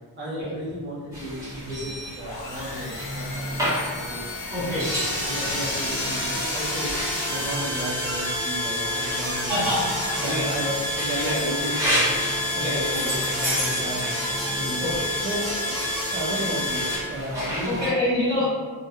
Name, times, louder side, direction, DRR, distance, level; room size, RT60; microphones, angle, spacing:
voice 1, 0.2-4.3 4.7-4.9 5.2-9.7 10.2-12.1 12.5-14.2 14.5-14.8 15.2-15.4 16.1-17.9 18.3-18.5, right 1 dB, 25° right, -7 dB, 0.5 m, -33 dB
sound 1, 1.1-17.9, equal, 5° right, 1.1 m, -32 dB
sound 2, 2.2-8.0, left 3 dB, 80° left, 0.6 m, -36 dB
voice 2, 4.5-4.9 9.5-10.5 11.1-11.5 12.5-13.1 14.8-15.1 17.3-18.5, left 1 dB, 75° right, -10 dB, 1.4 m, -27 dB
sound 3, 4.8-17.0, left 1 dB, 35° left, 0.7 m, -28 dB
2.5 x 2.1 x 2.6 m, 1.5 s
wide cardioid pair, 125°, 44 cm